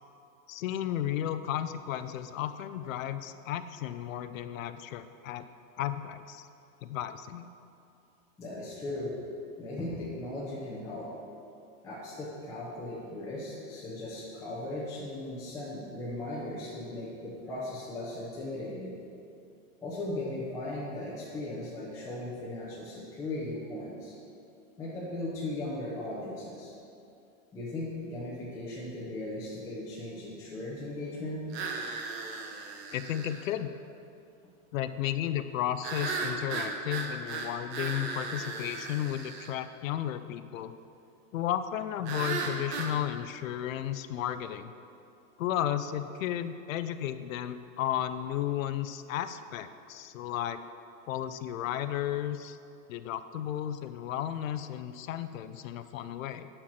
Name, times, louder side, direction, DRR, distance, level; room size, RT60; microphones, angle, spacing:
voice 1, 0.5-5.5 5.8-6.5 6.8-7.5 32.9-33.7 34.7-40.7 41.3-44.7 45.4-50.6 51.1-52.6 52.9-56.5, left 11 dB, 70° left, 11 dB, 0.6 m, -33 dB
voice 2, 8.4-9.2 9.6-11.2 11.8-18.9 19.8-24.1 24.8-26.7 27.5-31.4, left 1 dB, 5° left, -8 dB, 0.7 m, -37 dB
sound 1, 31.5-33.5 35.8-39.5 42.1-42.9, right 4 dB, 50° right, 1.1 m, -36 dB
11.0 x 4.5 x 5.9 m, 2.6 s
supercardioid pair, 170°, 41 cm